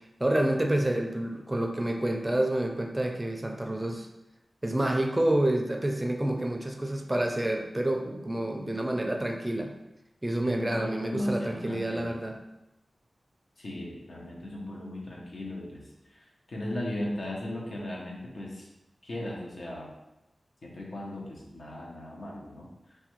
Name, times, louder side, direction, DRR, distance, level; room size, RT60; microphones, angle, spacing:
voice 1, 0.2-4.1 4.6-9.7 10.2-12.3, right 1 dB, 20° right, 3 dB, 0.4 m, -28 dB
voice 2, 10.4-12.2 13.6-18.7 19.0-19.9 20.6-22.7, left 1 dB, 75° left, -3 dB, 0.7 m, -37 dB
3.3 x 2.1 x 3.0 m, 0.92 s
wide cardioid pair, 65°, 0 cm